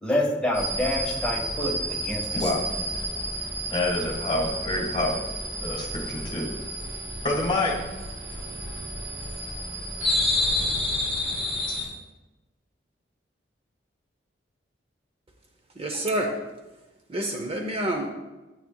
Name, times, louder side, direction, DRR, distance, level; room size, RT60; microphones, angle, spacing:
voice 1, 0.0-2.5, left 1 dB, 5° left, -3 dB, 1.4 m, -27 dB
sound 1, 0.5-11.9, equal, 75° right, 2.8 m, -30 dB
voice 2, 2.3-2.6 3.7-5.3 5.6-6.5 7.2-7.7, left 2 dB, 25° left, 0 dB, 1.7 m, -27 dB
voice 3, 15.8-16.3 17.1-18.1, right 1 dB, 30° right, 3 dB, 0.7 m, -27 dB
12.0 x 8.6 x 2.3 m, 1.1 s
head